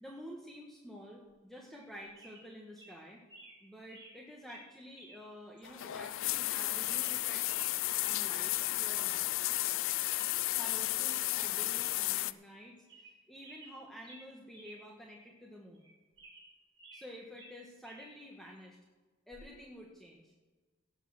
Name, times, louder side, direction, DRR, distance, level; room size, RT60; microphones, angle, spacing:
voice 1, 0.0-3.2 3.6-7.7 8.0-9.3 10.5-15.9 16.9-18.8 19.3-20.3, equal, ahead, -2 dB, 1.4 m, -50 dB
sound 1, 1.7-1.9 2.2-2.5 2.8-2.9 3.3-3.6 3.9-4.2 4.5-4.7 5.0-5.2 5.6-5.7 6.2-6.5 6.8-7.7 8.0-8.2 8.5-8.8 9.1-9.2 9.5-9.7 10.0-10.8 11.1-11.4 11.7-11.9 12.3-12.4 12.8-13.2 13.4-14.8 15.1-15.2 15.7-17.1 17.4-18.1 19.3-19.5, right 2 dB, 25° right, 4.6 m, -55 dB
sound 2, 5.6-12.3, left 16 dB, 65° left, 0.4 m, -33 dB
17.5 x 6.4 x 6.2 m, 1.3 s
head